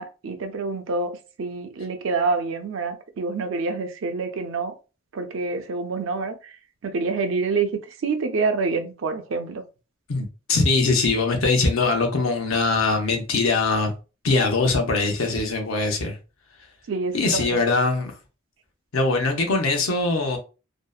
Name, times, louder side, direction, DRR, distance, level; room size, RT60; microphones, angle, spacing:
voice 1, 0.0-4.7 5.1-6.6 6.8-9.6 16.9-17.6, right 4 dB, 70° right, 0.4 m, -27 dB
voice 2, 10.1-13.9 14.2-16.2 17.1-18.2 18.9-20.4, left 3 dB, 85° left, 0.6 m, -22 dB
2.6 x 2.0 x 2.3 m
head